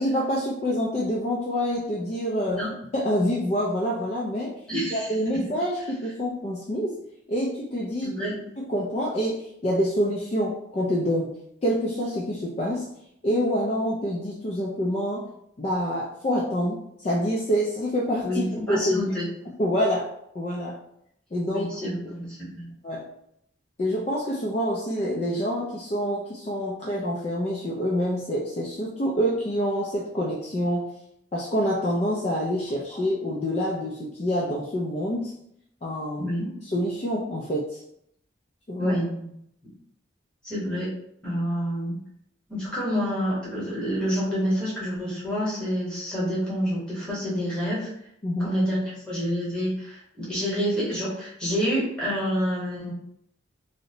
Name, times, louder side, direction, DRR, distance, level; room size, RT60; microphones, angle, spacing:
voice 1, 0.0-2.6 2.9-4.5 4.9-7.0 7.3-8.1 8.6-11.3 11.6-12.9 13.2-15.3 15.6-19.1 19.6-20.8 21.3-21.7 22.0-22.1 22.8-23.1 23.8-30.9 31.3-35.3 35.8-36.3 36.6-37.8 38.7-39.0 48.2-48.6, equal, 35° left, -4 dB, 0.3 m, -27 dB
voice 2, 4.7-5.5 8.0-8.3 18.2-19.3 21.5-22.7 36.2-36.5 38.8-39.3 40.4-40.9 41.2-41.9 42.5-47.9 48.4-52.9, equal, 5° left, -8 dB, 1.0 m, -28 dB
2.6 x 2.0 x 2.7 m, 0.74 s
head